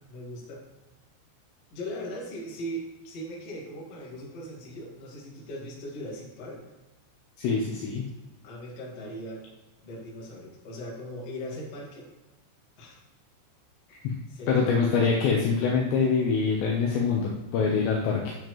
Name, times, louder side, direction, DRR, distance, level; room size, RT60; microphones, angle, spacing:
voice 1, 0.1-0.6 1.7-6.6 8.4-9.4 9.8-12.1 12.8-13.0 14.3-15.1, equal, 50° left, -3 dB, 2.1 m, -39 dB
voice 2, 7.4-8.0 13.9-14.1 14.5-18.4, left 5 dB, 75° left, -1 dB, 2.7 m, -25 dB
10.5 x 7.1 x 3.1 m, 1.1 s
omnidirectional pair, 5.8 m